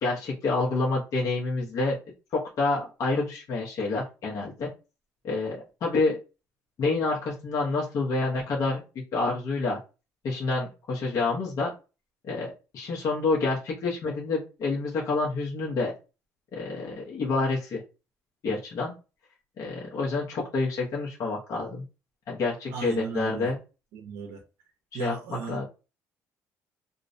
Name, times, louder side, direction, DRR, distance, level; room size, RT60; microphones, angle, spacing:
voice 1, 0.0-2.0 2.6-4.7 5.2-6.2 6.8-8.8 9.1-9.8 10.2-11.7 12.2-15.9 16.5-17.8 18.4-18.9 19.6-21.8 22.3-23.6 25.0-25.6, left 3 dB, 60° left, 0.8 m, -28 dB
voice 2, 22.7-23.5 23.9-24.4 24.9-25.6, right 5 dB, 90° right, 0.5 m, -36 dB
2.4 x 2.0 x 2.5 m
cardioid pair, 95°, 6 cm